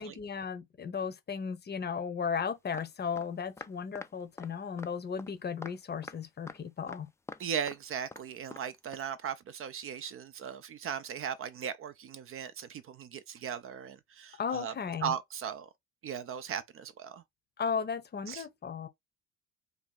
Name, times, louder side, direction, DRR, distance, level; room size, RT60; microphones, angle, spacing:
voice 1, 0.0-7.1 14.4-15.1 17.6-18.9, left 6 dB, 30° left, 0.8 m, -35 dB
sound 1, 2.7-2.9 3.2-3.3 3.6-4.1 4.4-4.5 4.8-4.9 5.2-5.3 5.6-5.8 6.0-6.2 6.5-6.6 6.9-7.4 7.7-7.8 8.1-8.2 8.5-8.6 8.9-9.0, left 3 dB, 10° left, 0.4 m, -44 dB
voice 2, 7.4-14.7 15.0-15.7 16.0-17.2 18.3-18.4, right 8 dB, 45° right, 0.5 m, -38 dB
2.8 x 2.3 x 4.0 m
supercardioid pair, 70°, 32 cm